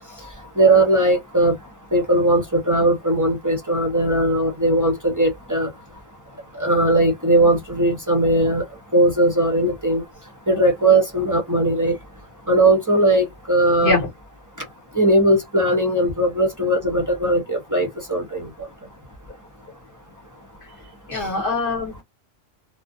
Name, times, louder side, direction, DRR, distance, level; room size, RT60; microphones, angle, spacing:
voice 1, 0.6-1.5 1.9-5.7 6.6-8.6 8.9-10.0 10.5-11.9 12.5-14.0 15.0-18.5 21.1-21.3, right 1 dB, 20° right, 0.6 m, -19 dB
voice 2, 21.1-22.0, left 3 dB, 50° left, 0.9 m, -23 dB
2.4 x 2.1 x 2.6 m
omnidirectional pair, 1.3 m